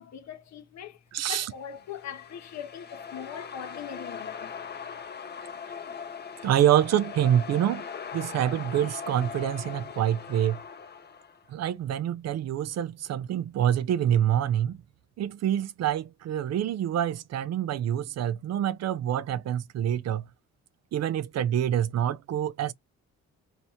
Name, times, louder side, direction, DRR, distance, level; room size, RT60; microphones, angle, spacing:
voice 1, 0.0-1.0 1.3-4.5, left 8 dB, 65° left, 0.9 m, -41 dB
voice 2, 1.1-1.5 6.4-7.8 8.1-10.6 11.5-14.8 15.2-20.3 20.9-22.7, right 10 dB, 60° right, 0.5 m, -26 dB
sound 1, 1.6-11.5, left 6 dB, 35° left, 0.7 m, -40 dB
4.2 x 3.3 x 2.8 m
cardioid pair, 90°, 30 cm